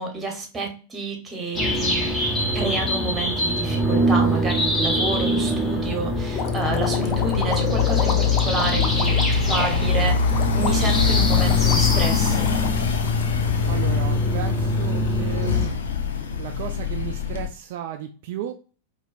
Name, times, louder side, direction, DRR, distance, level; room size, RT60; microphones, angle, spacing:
voice 1, 0.0-2.1 2.5-12.5, right 3 dB, 20° right, 3 dB, 1.1 m, -29 dB
sound 1, 1.5-15.6, left 1 dB, 15° left, 1.2 m, -24 dB
sound 2, 6.3-13.7, left 6 dB, 35° left, 0.6 m, -32 dB
sound 3, 7.1-17.5, left 6 dB, 75° left, 0.5 m, -24 dB
voice 2, 13.7-15.8 16.4-18.5, right 10 dB, 55° right, 5 dB, 0.3 m, -34 dB
4.2 x 2.3 x 2.5 m, 0.37 s
hypercardioid pair, 100°, 0 cm